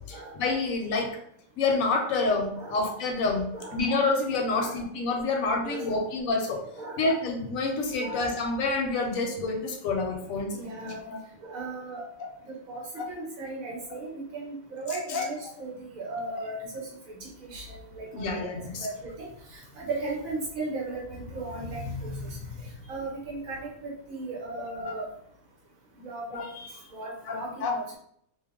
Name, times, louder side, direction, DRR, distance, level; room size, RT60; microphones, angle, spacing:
voice 1, 0.1-1.1 1.6-3.5 3.7-6.6 7.0-10.6 10.9-11.2 13.0-13.1 15.1-15.3 18.1-18.9 24.8-25.0 26.3-26.5 27.3-27.8, left 3 dB, 80° left, 2 dB, 1.1 m, -28 dB
voice 2, 8.0-8.3 10.5-11.0 11.4-12.0 12.5-16.6 17.1-18.4 18.8-19.3 19.8-22.4 22.9-25.0 26.0-28.0, right 2 dB, 75° right, -2 dB, 1.4 m, -36 dB
3.1 x 2.1 x 3.5 m, 0.67 s
omnidirectional pair, 1.4 m